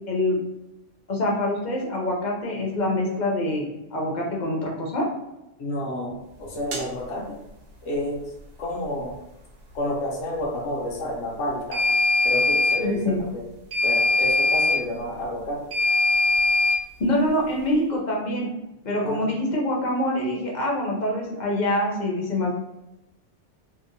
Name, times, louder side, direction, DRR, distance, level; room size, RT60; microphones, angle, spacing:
voice 1, 0.1-0.4 1.1-3.6 3.9-5.0 12.8-13.2 17.0-18.5 18.8-22.5, left 1 dB, 50° left, -2 dB, 0.6 m, -25 dB
voice 2, 5.6-7.4 7.8-9.2 9.7-11.9 12.2-13.5 13.8-15.7 19.0-19.4, left 1 dB, 80° left, -2 dB, 0.9 m, -30 dB
sound 1, 6.7-6.9 11.7-12.8 13.7-14.8 15.7-16.8, left 3 dB, 60° right, 0.7 m, -21 dB
2.7 x 2.1 x 2.5 m, 0.92 s
omnidirectional pair, 1.2 m